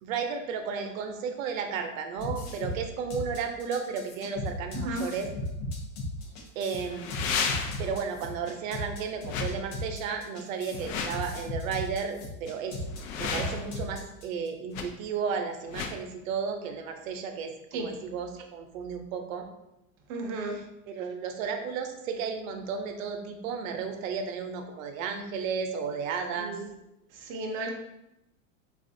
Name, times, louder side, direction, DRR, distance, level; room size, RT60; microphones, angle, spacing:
voice 1, 0.0-5.3 6.6-7.3 7.8-12.8 13.2-19.5 20.9-26.6, right 6 dB, 85° right, 5 dB, 0.6 m, -33 dB
sound 1, 2.2-14.5, left 1 dB, 50° left, 0.7 m, -36 dB
sound 2, 4.9-5.0 6.8-8.0 9.2-9.5 10.7-11.2 12.8-13.8 14.7-14.9 15.7-16.0, left 6 dB, 85° left, 0.5 m, -33 dB
voice 2, 20.1-20.6 26.4-26.7 27.1-27.7, right 2 dB, 35° right, 1 dB, 0.4 m, -34 dB
3.4 x 2.4 x 2.6 m, 0.88 s
supercardioid pair, 160°, 39 cm